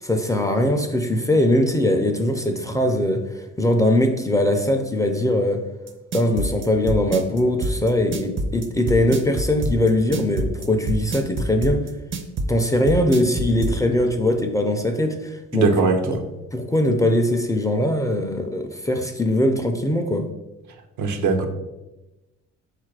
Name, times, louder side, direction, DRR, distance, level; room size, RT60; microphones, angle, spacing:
voice 1, 0.0-5.7 6.1-11.8 12.5-15.7 16.5-20.3, left 1 dB, 10° left, 4 dB, 0.4 m, -21 dB
sound 1, 5.9-13.8, right 2 dB, 40° right, 0.6 m, -26 dB
voice 2, 15.5-16.2 21.0-21.5, right 4 dB, 75° right, 5 dB, 0.7 m, -20 dB
4.0 x 2.5 x 4.6 m, 1.0 s
cardioid pair, 90°, 30 cm